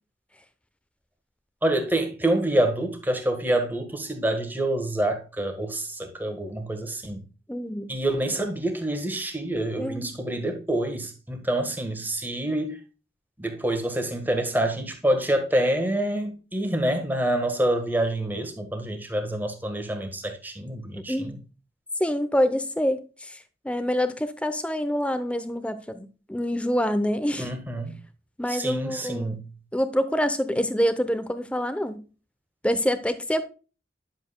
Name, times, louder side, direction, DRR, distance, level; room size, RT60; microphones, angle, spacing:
voice 1, 1.6-7.2 7.9-12.8 13.4-21.4 27.4-27.9 28.5-29.4, right 1 dB, 10° right, 1.5 m, -27 dB
voice 2, 7.5-7.9 9.8-10.1 21.0-21.3 22.0-27.5 28.4-29.4 29.7-32.0 32.6-33.4, equal, 5° left, 0.8 m, -26 dB
10.5 x 7.4 x 2.3 m
head